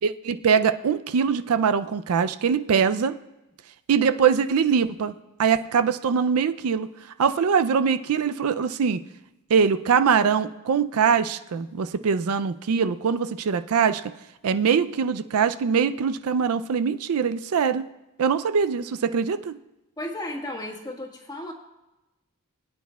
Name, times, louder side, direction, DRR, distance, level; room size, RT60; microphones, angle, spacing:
voice 1, 0.0-3.2 3.9-5.1 5.4-6.9 7.2-9.0 9.5-14.0 14.4-17.9 18.2-19.6, right 6 dB, 70° right, 11 dB, 0.4 m, -22 dB
voice 2, 20.0-21.5, left 1 dB, 20° left, 0 dB, 1.5 m, -34 dB
22.0 x 9.4 x 2.3 m, 0.98 s
head